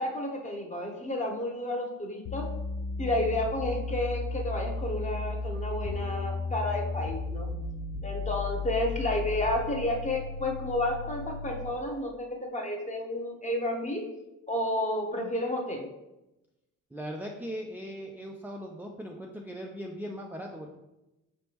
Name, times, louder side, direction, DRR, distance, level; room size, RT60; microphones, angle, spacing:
voice 1, 0.0-2.5 3.0-7.5 8.0-14.1 14.5-15.9, left 1 dB, 25° left, 1 dB, 1.0 m, -31 dB
sound 1, 2.2-11.8, left 3 dB, 60° left, 0.4 m, -35 dB
voice 2, 16.9-20.8, equal, 5° right, 0 dB, 0.4 m, -39 dB
5.2 x 3.4 x 2.9 m, 0.95 s
cardioid pair, 95°, 31 cm